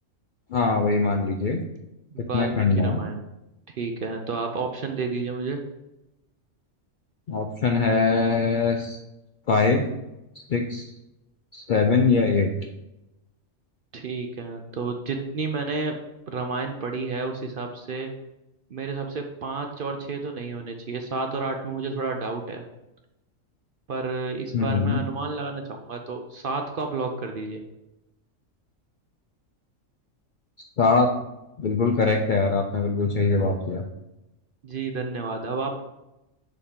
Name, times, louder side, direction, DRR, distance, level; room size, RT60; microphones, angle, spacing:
voice 1, 0.5-1.6 2.2-3.0 7.3-9.0 9.5-9.8 10.5-10.8 11.5-12.5 24.5-25.0 30.8-31.1 31.6-33.8, left 4 dB, 60° left, 3 dB, 0.5 m, -22 dB
voice 2, 2.1-3.2 3.7-5.6 13.9-15.9 16.3-18.1 18.7-22.6 23.9-27.6 34.6-35.8, right 4 dB, 55° right, 4 dB, 0.6 m, -31 dB
6.6 x 4.1 x 3.7 m, 0.93 s
omnidirectional pair, 1.4 m